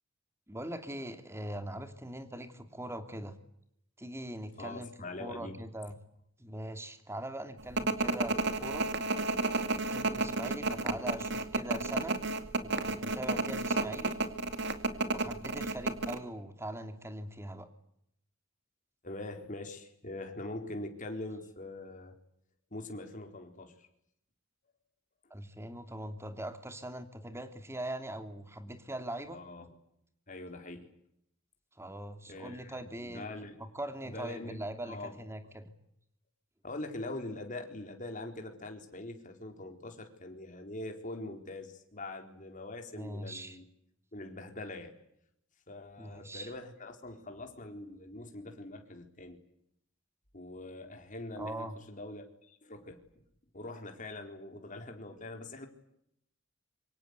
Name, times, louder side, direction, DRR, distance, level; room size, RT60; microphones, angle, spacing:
voice 1, 0.5-3.3 4.0-4.9 5.2-5.9 6.4-8.9 9.6-12.2 12.6-14.2 15.0-17.7 25.3-29.4 31.8-33.3 33.6-35.7 42.9-43.6 46.0-46.5 51.3-51.7, right 1 dB, 15° right, 7 dB, 2.8 m, -41 dB
voice 2, 4.6-5.6 19.0-22.2 22.7-23.9 29.3-29.7 30.3-30.9 32.3-33.6 34.0-35.2 36.6-43.6 44.1-44.9 45.7-49.4 50.3-53.0 53.5-55.7, left 2 dB, 40° left, 4 dB, 4.1 m, -43 dB
sound 1, 7.8-16.2, right 3 dB, 60° right, 2.5 m, -31 dB
26.5 x 25.0 x 8.2 m, 0.75 s
head